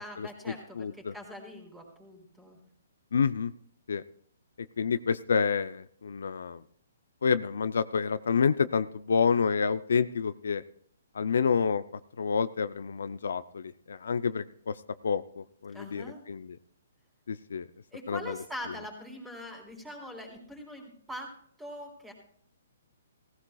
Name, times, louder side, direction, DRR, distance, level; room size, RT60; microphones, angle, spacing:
voice 1, 0.0-2.6 15.7-16.2 17.9-21.3 21.6-22.1, equal, 5° right, 0 dB, 3.8 m, -43 dB
voice 2, 0.8-1.1 3.1-3.5 3.9-4.0 4.8-6.6 7.2-10.6 11.1-11.8 12.2-14.8 15.0-16.6 17.3-17.7 18.1-18.4, left 6 dB, 75° left, 14 dB, 0.4 m, -28 dB
17.0 x 15.5 x 2.3 m, 0.62 s
hypercardioid pair, 145°, 0 cm